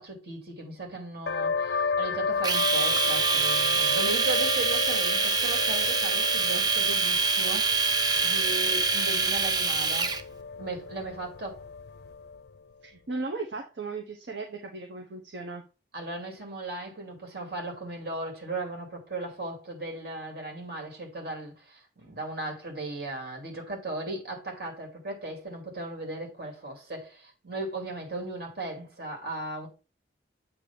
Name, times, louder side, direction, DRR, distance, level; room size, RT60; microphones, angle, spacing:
voice 1, 0.0-7.7 8.2-10.2 10.6-11.6 15.9-29.7, right 2 dB, 55° right, 2.5 m, -37 dB
sound 1, 1.3-12.6, left 5 dB, 60° left, 0.4 m, -33 dB
Domestic sounds home sounds, 2.4-10.2, right 4 dB, 20° right, 0.5 m, -25 dB
voice 2, 12.8-15.6, right 3 dB, 75° right, 1.0 m, -36 dB
8.0 x 2.9 x 5.9 m
head